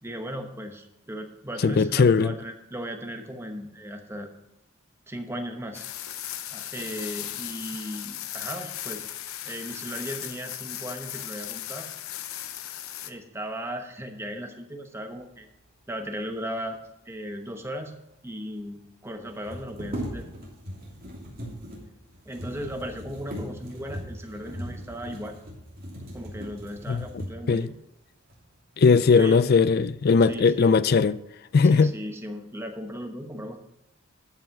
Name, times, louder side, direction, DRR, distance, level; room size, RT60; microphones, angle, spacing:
voice 1, 0.0-4.3 5.1-5.8 6.5-9.1 9.4-11.9 13.0-15.5 15.9-16.8 17.1-17.9 18.2-20.2 22.3-25.4 26.1-27.7 29.1-29.4 30.3-30.7 31.7-33.6, equal, 10° right, 1.0 m, -36 dB
voice 2, 1.6-2.3 26.9-27.0 27.5-27.7 28.8-31.2 31.5-31.9, left 5 dB, 45° left, 0.3 m, -19 dB
sound 1, 5.7-13.1, left 12 dB, 75° left, 0.7 m, -37 dB
sound 2, 17.8-17.9 18.1-18.2 19.2-27.6 28.3-28.4 28.9-29.5 29.8-30.4, equal, 40° right, 3.0 m, -39 dB
13.0 x 5.6 x 5.9 m
head